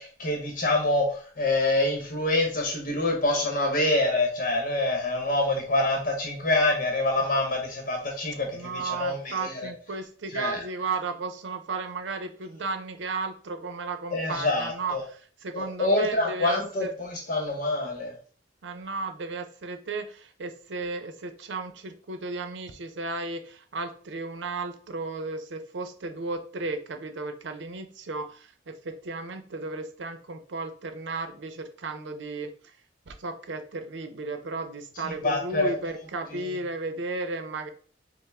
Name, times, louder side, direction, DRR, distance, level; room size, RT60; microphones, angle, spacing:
voice 1, 0.0-9.7 10.3-10.6 14.1-15.0 15.5-18.1 35.2-35.7 36.3-36.5, left 2 dB, 50° left, 1 dB, 0.9 m, -26 dB
voice 2, 8.5-16.9 18.6-32.7 33.1-37.7, right 3 dB, 90° right, 7 dB, 0.6 m, -34 dB
5.5 x 2.1 x 3.4 m, 0.43 s
head